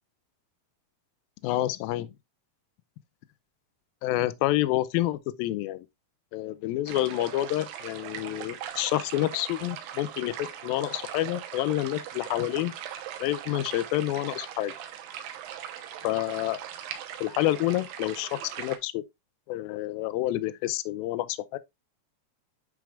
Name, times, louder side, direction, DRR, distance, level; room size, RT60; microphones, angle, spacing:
voice 1, 1.4-2.1 4.0-5.9 6.3-12.7 13.2-14.7 16.0-16.6 17.2-19.0 19.5-21.6, left 15 dB, 80° left, 2.2 m, -28 dB
sound 1, 6.9-18.8, right 10 dB, 85° right, 3.0 m, -40 dB
9.2 x 4.9 x 2.4 m
omnidirectional pair, 4.6 m